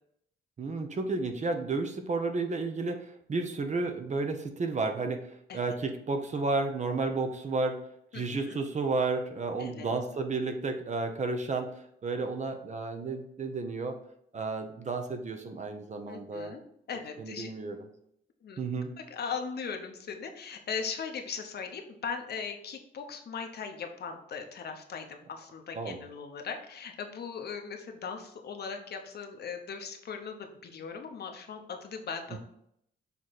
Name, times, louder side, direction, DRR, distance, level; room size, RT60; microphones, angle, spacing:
voice 1, 0.6-5.2 5.5-7.8 8.1-11.7 12.0-13.9 14.3-16.6 17.2-17.8 18.6-18.9 25.7-26.0, right 3 dB, 35° right, 5 dB, 0.9 m, -32 dB
voice 2, 8.1-8.6 9.6-9.9 16.1-16.6 16.9-17.5 18.4-18.6 19.0-32.4, left 6 dB, 55° left, 4 dB, 1.0 m, -39 dB
7.0 x 3.2 x 4.1 m, 0.73 s
cardioid pair, 90°, 20 cm